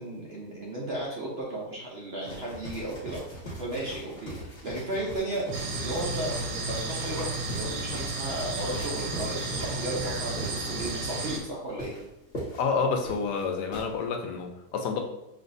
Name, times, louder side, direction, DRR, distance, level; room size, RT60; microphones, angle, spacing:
voice 1, 0.0-3.2 3.6-11.9, right 1 dB, 55° right, -4 dB, 0.7 m, -35 dB
sound 1, 2.2-13.9, right 1 dB, 35° left, 0.9 m, -40 dB
sound 2, 5.5-11.4, right 3 dB, 90° right, 1.3 m, -33 dB
voice 2, 12.5-15.0, left 5 dB, 80° left, 4 dB, 1.2 m, -29 dB
5.3 x 2.7 x 2.6 m, 0.89 s
omnidirectional pair, 1.8 m